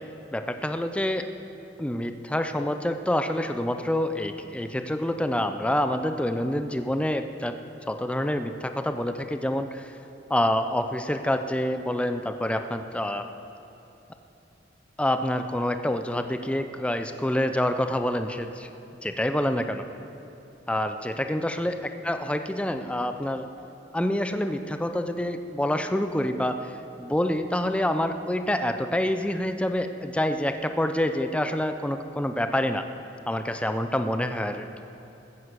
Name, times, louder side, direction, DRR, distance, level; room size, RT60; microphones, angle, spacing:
voice 1, 0.3-1.3 1.8-7.6 7.9-9.9 10.3-13.3 15.0-18.7 19.0-19.8 20.7-21.8 22.0-23.5 23.9-32.8 33.3-34.7, left 1 dB, 5° left, 8 dB, 0.5 m, -27 dB
14.0 x 9.9 x 7.9 m, 2.8 s
head